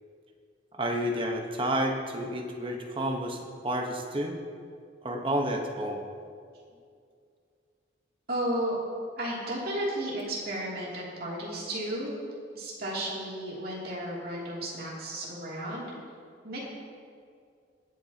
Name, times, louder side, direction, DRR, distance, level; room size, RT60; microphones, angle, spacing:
voice 1, 0.8-4.4 5.0-6.0, right 1 dB, 25° right, 1 dB, 1.1 m, -30 dB
voice 2, 8.3-8.7 9.2-12.1 12.5-15.9 16.4-16.7, right 1 dB, 50° right, -6 dB, 2.8 m, -33 dB
19.5 x 8.5 x 2.9 m, 2.3 s
head